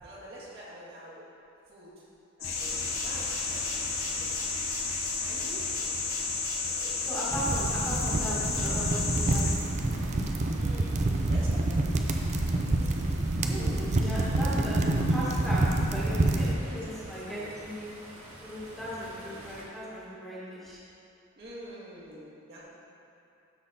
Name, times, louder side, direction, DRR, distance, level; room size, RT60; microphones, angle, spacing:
voice 1, 0.0-1.2 1.7-2.0 2.4-4.6 5.2-6.1 6.6-6.9 10.5-11.0 11.3-12.1 12.5-13.2 13.5-13.9 14.5-14.7 16.6-17.6 19.1-19.6 21.4-22.6, equal, 50° right, -8 dB, 2.0 m, -48 dB
sound 1, 2.4-9.6, left 4 dB, 85° left, 1.2 m, -32 dB
sound 2, 2.5-19.6, right 1 dB, 85° right, 1.6 m, -46 dB
voice 2, 5.2-5.6 7.1-9.5 13.4-14.8 15.1-17.9 18.4-20.8, equal, ahead, -10 dB, 1.7 m, -37 dB
sound 3, 7.3-16.5, right 2 dB, 35° right, 0.5 m, -27 dB
13.0 x 4.3 x 4.2 m, 2.8 s
head